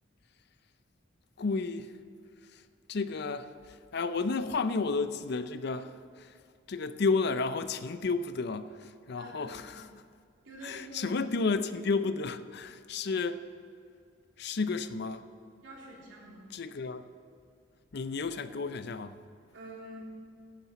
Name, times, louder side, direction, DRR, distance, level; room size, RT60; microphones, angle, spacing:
voice 1, 1.4-2.0 2.9-3.5 3.9-6.3 6.7-9.9 10.6-13.5 14.4-15.3 16.5-17.1 17.9-19.2, left 4 dB, 60° left, 0.5 m, -32 dB
voice 2, 9.1-9.7 10.4-11.1 15.6-16.5 19.5-20.1, right 1 dB, 85° right, 2.9 m, -47 dB
15.0 x 10.5 x 4.2 m
head